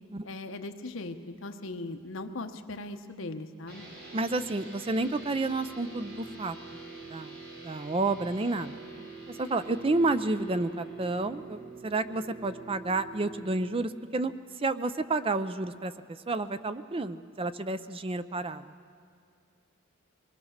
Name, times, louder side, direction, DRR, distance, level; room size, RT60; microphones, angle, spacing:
voice 1, 0.2-3.9, left 2 dB, 65° left, 6 dB, 1.1 m, -39 dB
sound 1, 3.7-13.4, right 3 dB, 55° right, 4.1 m, -45 dB
voice 2, 4.1-6.6 7.1-8.8 9.3-18.7, right 2 dB, 25° right, 12 dB, 0.5 m, -30 dB
24.5 x 20.0 x 6.5 m, 2.3 s
head